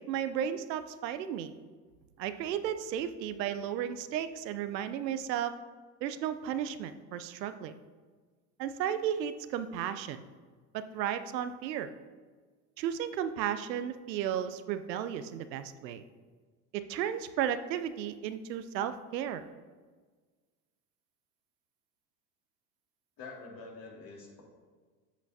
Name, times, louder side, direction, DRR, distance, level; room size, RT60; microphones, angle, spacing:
voice 1, 0.0-1.5 2.2-5.5 6.0-7.7 8.6-10.2 10.7-11.9 12.8-16.0 16.7-19.4, right 9 dB, 90° right, 11 dB, 0.6 m, -34 dB
voice 2, 23.2-24.4, left 3 dB, 45° left, -2 dB, 2.5 m, -46 dB
8.1 x 8.0 x 2.8 m, 1.4 s
hypercardioid pair, 85°, 49 cm